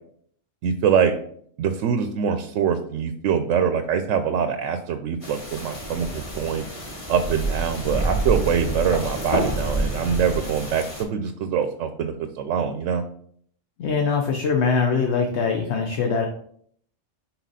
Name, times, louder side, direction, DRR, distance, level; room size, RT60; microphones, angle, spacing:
voice 1, 0.6-1.1 1.6-6.7 7.1-13.0, right 7 dB, 80° right, 8 dB, 0.9 m, -24 dB
sound 1, 5.2-11.0, right 1 dB, 25° left, 1.4 m, -28 dB
voice 2, 13.8-16.3, left 5 dB, 65° left, 3 dB, 1.0 m, -22 dB
6.1 x 4.1 x 4.0 m, 0.63 s
omnidirectional pair, 1.3 m